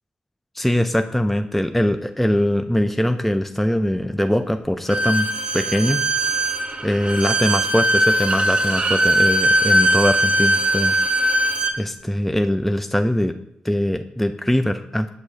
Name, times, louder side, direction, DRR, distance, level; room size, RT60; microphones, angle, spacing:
voice 1, 0.6-5.3 5.5-6.0 6.8-11.0 11.8-13.3 13.6-15.1, equal, 5° left, 7 dB, 0.4 m, -21 dB
Bowed string instrument, 4.9-11.8, right 1 dB, 40° right, 0.6 m, -20 dB
7.3 x 6.3 x 2.6 m, 0.76 s
cardioid pair, 55°, 3 cm